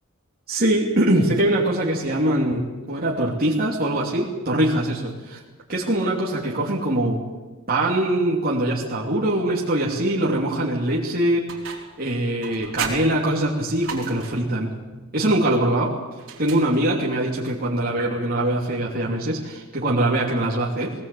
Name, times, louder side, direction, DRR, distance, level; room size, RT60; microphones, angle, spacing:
voice 1, 0.5-5.4 5.7-7.2 7.7-11.5 12.0-15.9 16.4-20.9, right 1 dB, 45° right, -3 dB, 3.0 m, -22 dB
sound 1, 11.5-12.0 12.4-14.5 16.2-17.1, right 6 dB, 65° right, 4.3 m, -35 dB
20.0 x 18.5 x 8.6 m, 1.2 s
head